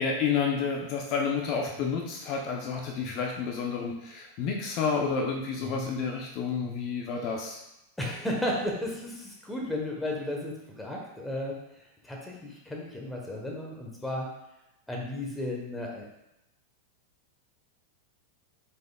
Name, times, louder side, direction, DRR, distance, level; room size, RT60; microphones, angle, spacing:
voice 1, 0.0-7.6, left 5 dB, 50° left, 0 dB, 0.6 m, -30 dB
voice 2, 8.0-14.3 14.9-16.1, left 1 dB, 5° left, -2 dB, 1.1 m, -34 dB
4.7 x 4.2 x 2.3 m, 0.89 s
hypercardioid pair, 115°, 0 cm